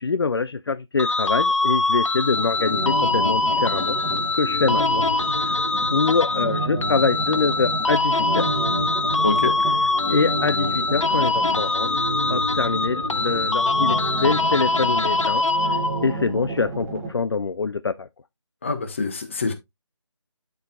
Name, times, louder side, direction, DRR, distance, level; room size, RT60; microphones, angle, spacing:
voice 1, 0.0-4.0 4.3-5.0 5.4-5.6 5.9-8.5 9.8-11.9 12.3-18.1, left 4 dB, 55° left, 0.4 m, -25 dB
sound 1, 1.0-16.2, left 3 dB, 80° left, 0.8 m, -23 dB
sound 2, 2.3-17.1, right 2 dB, 5° right, 1.3 m, -30 dB
voice 2, 9.2-9.5 18.6-19.5, left 3 dB, 25° left, 1.0 m, -25 dB
12.0 x 4.6 x 2.4 m
figure-of-eight pair, 170°, 16 cm